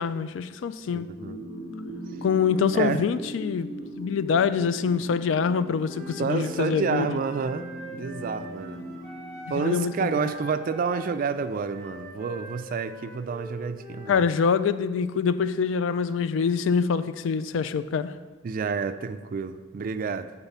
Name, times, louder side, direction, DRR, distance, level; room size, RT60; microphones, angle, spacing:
voice 1, 0.0-1.1 2.2-3.7 4.0-7.2 9.5-10.3 14.1-18.2, left 6 dB, 70° left, 13 dB, 0.3 m, -25 dB
voice 2, 0.9-1.4 2.7-3.1 6.2-8.8 9.5-14.3 18.4-20.3, right 5 dB, 45° right, 10 dB, 0.3 m, -29 dB
sound 1, 1.2-10.2, equal, 50° left, 1.5 m, -40 dB
Wind instrument woodwind instrument, 5.8-9.9 10.1-14.3, equal, ahead, 1.2 m, -43 dB
7.1 x 4.1 x 5.5 m, 1.3 s
head